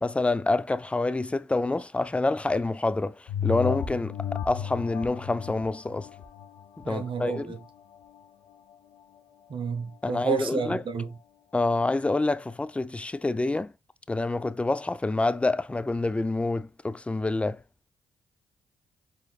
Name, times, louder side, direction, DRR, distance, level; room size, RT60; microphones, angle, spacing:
voice 1, 0.0-4.1 4.4-6.1 6.9-7.5 10.0-10.8 11.5-13.7 14.1-17.6, left 2 dB, 10° left, 0.3 m, -27 dB
sound 1, 3.3-8.2 8.7-8.8, left 8 dB, 80° left, 1.0 m, -34 dB
voice 2, 6.8-7.6 9.5-11.2, right 6 dB, 50° right, 0.9 m, -31 dB
4.6 x 3.6 x 2.3 m
supercardioid pair, 60°, 11 cm